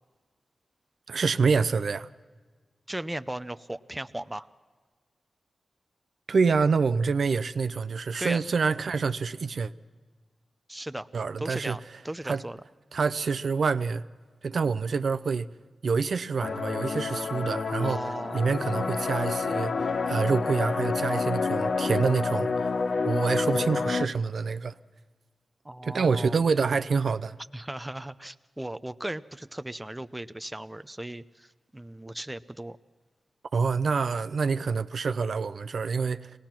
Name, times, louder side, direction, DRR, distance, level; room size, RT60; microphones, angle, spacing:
voice 1, 1.1-2.1 6.3-9.7 11.1-11.8 12.2-12.4 12.9-14.0 14.4-15.5 15.8-18.0 18.3-22.7 23.0-24.7 25.8-27.4 33.5-36.3, right 5 dB, 65° right, 0.6 m, -26 dB
voice 2, 2.9-4.5 8.2-8.4 10.7-11.1 11.4-11.8 12.0-12.6 17.8-18.5 25.6-26.4 27.5-32.8, right 1 dB, 10° right, 0.5 m, -36 dB
sound 1, 16.4-24.1, left 4 dB, 55° left, 0.7 m, -28 dB
24.5 x 18.0 x 5.9 m
wide cardioid pair, 105°, 0 cm